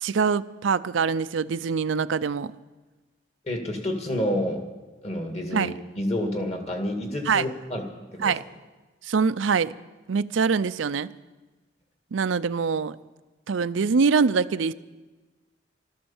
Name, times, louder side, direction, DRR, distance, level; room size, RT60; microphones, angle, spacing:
voice 1, 0.0-2.5 5.5-5.7 7.3-7.4 8.2-8.4 9.0-9.7 10.1-11.1 12.1-13.0 13.5-14.7, right 5 dB, 90° right, 0.5 m, -24 dB
voice 2, 3.4-4.6 5.0-8.4, left 1 dB, 35° left, 2.0 m, -29 dB
14.5 x 13.5 x 7.2 m
head